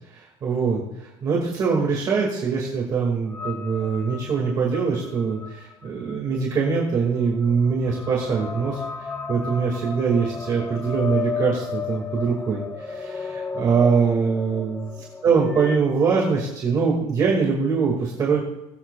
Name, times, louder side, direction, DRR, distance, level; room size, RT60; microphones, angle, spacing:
voice 1, 0.1-8.8 9.3-14.9 15.2-18.4, right 5 dB, 30° right, -2 dB, 2.2 m, -23 dB
sound 1, 3.3-15.8, left 5 dB, 10° left, 0.6 m, -34 dB
21.0 x 8.0 x 2.4 m, 0.89 s
cardioid pair, 175°, 12 cm